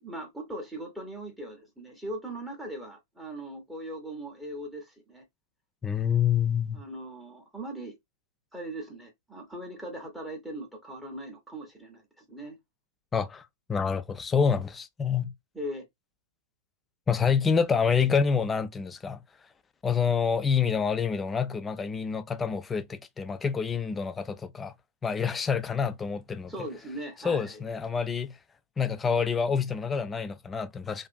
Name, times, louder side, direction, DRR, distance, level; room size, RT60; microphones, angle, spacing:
voice 1, 0.0-5.2 6.7-8.0 8.5-12.6 15.5-15.8 26.5-27.6, right 1 dB, 5° right, 0.7 m, -39 dB
voice 2, 5.8-6.8 13.1-15.3 17.1-19.2 19.8-24.7 25.0-26.5 27.2-28.3 28.8-31.1, left 6 dB, 15° left, 0.3 m, -27 dB
2.4 x 2.4 x 2.3 m
figure-of-eight pair, 105°, 0 cm